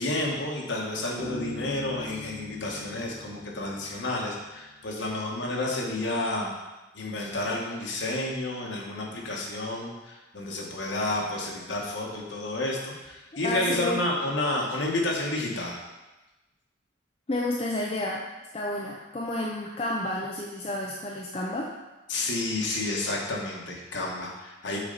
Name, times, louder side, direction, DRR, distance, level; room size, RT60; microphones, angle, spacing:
voice 1, 0.0-6.5 6.9-15.7 22.1-24.8, left 2 dB, 70° left, -2 dB, 1.4 m, -30 dB
Bass guitar, 1.2-4.6, left 3 dB, 75° right, 1.5 m, -41 dB
voice 2, 13.4-14.0 17.3-18.3 18.5-21.7, left 1 dB, 30° left, -2 dB, 0.5 m, -30 dB
7.0 x 4.3 x 4.0 m, 1.1 s
head